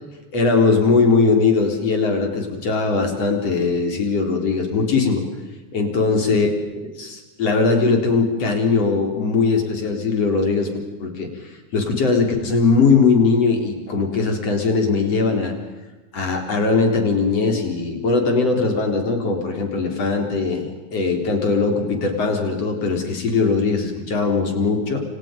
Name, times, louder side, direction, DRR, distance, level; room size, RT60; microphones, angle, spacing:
voice 1, 0.3-5.2 5.7-6.5 6.8-10.7 11.0-11.3 11.7-15.5 16.1-20.7 20.9-25.0, left 4 dB, 55° left, 3 dB, 5.0 m, -20 dB
29.0 x 29.0 x 5.3 m, 1.2 s
omnidirectional pair, 3.5 m